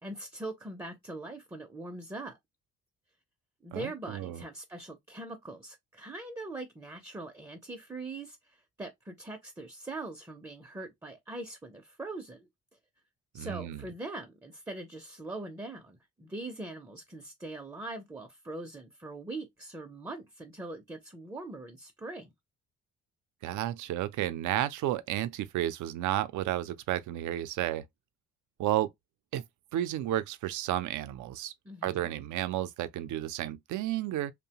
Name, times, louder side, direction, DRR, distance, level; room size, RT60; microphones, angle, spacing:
voice 1, 0.0-2.4 3.6-12.5 13.3-22.3 31.6-32.1, right 2 dB, 10° right, 0.5 m, -42 dB
voice 2, 3.7-4.4 13.3-13.8 23.4-27.8 28.6-28.9 29.3-29.4 29.7-31.5 31.8-34.3, right 13 dB, 75° right, 0.5 m, -32 dB
2.7 x 2.1 x 2.8 m
cardioid pair, 90°, 30 cm